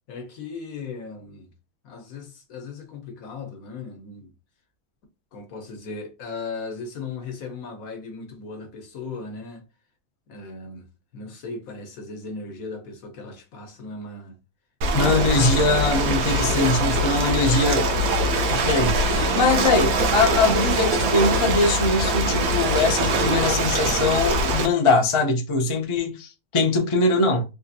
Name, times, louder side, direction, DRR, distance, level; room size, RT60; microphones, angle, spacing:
voice 1, 0.1-1.5 1.8-4.3 5.3-9.6 10.3-14.3, left 4 dB, 70° left, 1.3 m, -37 dB
Ocean, 14.8-24.7, right 1 dB, 75° right, 1.2 m, -22 dB
voice 2, 14.9-17.8 18.5-27.4, left 3 dB, 35° left, 0.4 m, -22 dB
3.5 x 2.5 x 2.6 m
omnidirectional pair, 1.5 m